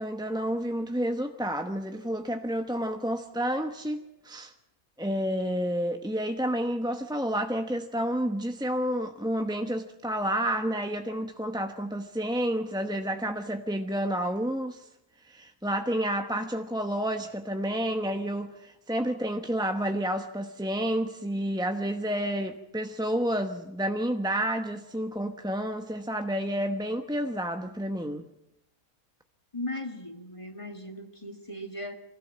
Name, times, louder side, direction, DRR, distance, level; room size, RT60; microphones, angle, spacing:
voice 1, 0.0-4.5 5.0-14.9 15.2-28.2, equal, 5° right, 0.8 m, -30 dB
voice 2, 29.5-32.0, left 1 dB, 20° left, 1.8 m, -37 dB
25.0 x 16.5 x 7.4 m
omnidirectional pair, 1.6 m